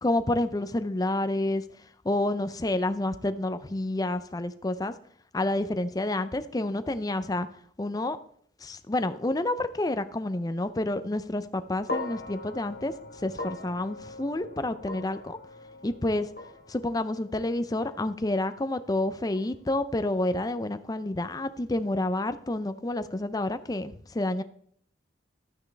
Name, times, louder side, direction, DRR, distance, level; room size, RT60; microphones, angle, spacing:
voice 1, 0.0-1.6 2.0-4.9 5.3-7.5 7.8-8.2 8.6-12.9 13.2-15.4 15.8-16.3 16.7-24.4, left 1 dB, 20° left, 11 dB, 0.5 m, -29 dB
sound 1, 11.9-20.2, left 2 dB, 55° left, 1.2 m, -41 dB
12.0 x 9.2 x 3.4 m, 0.62 s
head